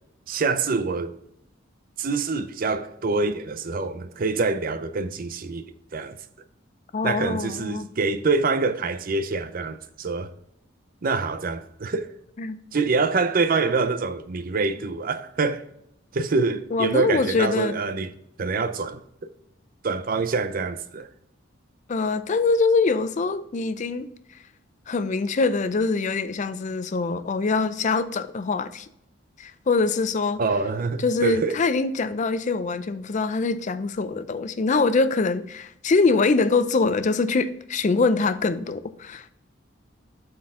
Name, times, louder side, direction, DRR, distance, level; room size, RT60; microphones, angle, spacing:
voice 1, 0.3-1.2 2.0-5.6 5.9-6.2 7.0-10.3 11.0-12.1 12.7-15.7 16.1-18.1 18.4-19.0 19.8-21.1 30.4-31.6, right 4 dB, 45° right, 0.5 m, -25 dB
voice 2, 6.9-7.9 12.4-12.6 16.7-17.8 21.9-24.1 24.9-28.9 29.4-30.4 31.0-39.3, left 4 dB, 40° left, 0.4 m, -24 dB
7.6 x 4.4 x 3.6 m
head